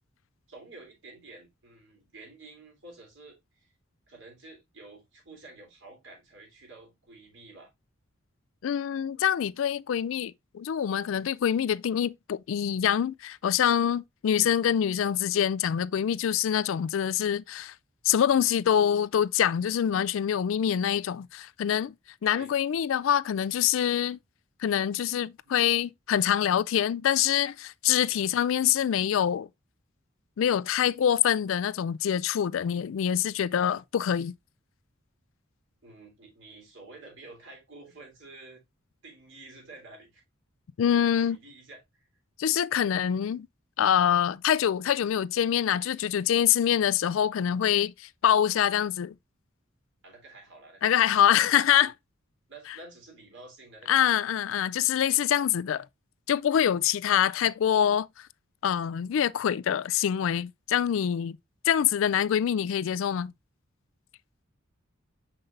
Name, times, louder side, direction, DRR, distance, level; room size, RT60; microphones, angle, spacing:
voice 1, 0.5-3.7 4.1-7.7 14.3-14.5 18.7-18.8 22.3-22.5 25.4-25.6 28.1-28.4 35.8-38.6 39.0-40.2 40.9-41.8 50.0-51.5 51.8-51.9 52.5-54.3, right 2 dB, 60° right, 3.4 m, -50 dB
voice 2, 8.6-17.7 18.0-21.9 22.2-24.2 24.6-29.5 30.4-34.3 40.8-41.4 42.4-43.5 43.8-49.1 50.8-51.9 53.9-55.9 56.3-58.3 58.6-61.4 61.6-63.3, left 9 dB, 70° left, 0.3 m, -25 dB
6.6 x 5.8 x 2.5 m
head